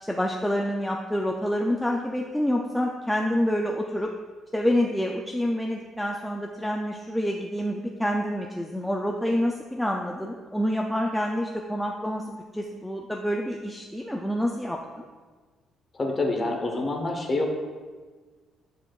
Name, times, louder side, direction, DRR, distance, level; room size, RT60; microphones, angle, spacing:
voice 1, 0.0-4.1 4.5-15.0, equal, ahead, 0 dB, 0.3 m, -27 dB
voice 2, 15.9-17.6, left 2 dB, 20° left, 1 dB, 0.9 m, -27 dB
9.9 x 4.7 x 2.3 m, 1.4 s
cardioid pair, 165°, 0 cm